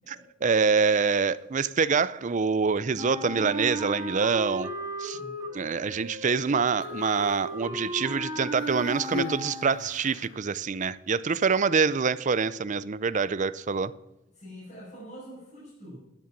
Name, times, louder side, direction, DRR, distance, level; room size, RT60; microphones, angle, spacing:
voice 1, 0.4-4.7 5.0-5.2 5.5-13.9, right 5 dB, 40° right, 0.5 m, -25 dB
Wind instrument woodwind instrument, 3.0-10.0, equal, 15° right, 2.3 m, -36 dB
voice 2, 5.1-5.4 14.3-16.0, equal, 40° left, 5.7 m, -45 dB
Human voice, 6.7-7.6 8.5-10.4 11.3-11.5, left 3 dB, 70° left, 0.5 m, -40 dB
12.5 x 9.5 x 6.0 m
head